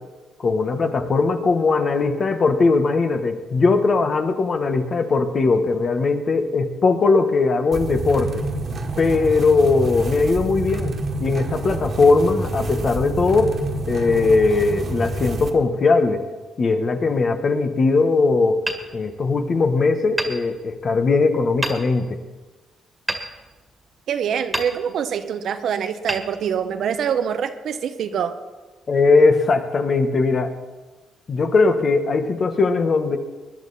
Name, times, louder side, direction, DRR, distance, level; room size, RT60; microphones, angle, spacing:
voice 1, 0.4-8.4 9.0-10.9 11.2-13.6 13.9-16.2 16.6-18.6 18.9-22.2 28.9-30.5 31.3-33.2, left 3 dB, 45° left, 7 dB, 1.4 m, -19 dB
sound 1, 7.7-15.5, right 2 dB, 50° right, 1.8 m, -28 dB
Hammer, 18.6-19.6 20.1-21.1 21.6-22.2 23.1-24.0 24.5-25.3 26.0-27.0, right 2 dB, 15° right, 2.0 m, -31 dB
voice 2, 24.1-28.4, right 8 dB, 70° right, 9 dB, 0.9 m, -25 dB
21.0 x 11.0 x 4.2 m, 1.2 s
cardioid pair, 90°, 0 cm